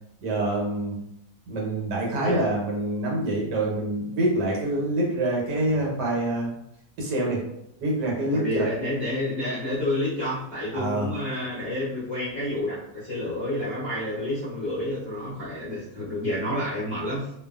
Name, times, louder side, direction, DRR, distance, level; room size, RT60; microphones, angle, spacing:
voice 1, 0.2-0.9 1.5-6.5 7.0-7.4 7.8-8.7 10.7-11.1, right 1 dB, 70° right, -2 dB, 1.3 m, -26 dB
voice 2, 2.2-2.5 5.7-5.9 8.3-17.3, left 1 dB, 45° left, -11 dB, 0.7 m, -29 dB
2.7 x 2.4 x 2.2 m, 0.79 s
omnidirectional pair, 1.9 m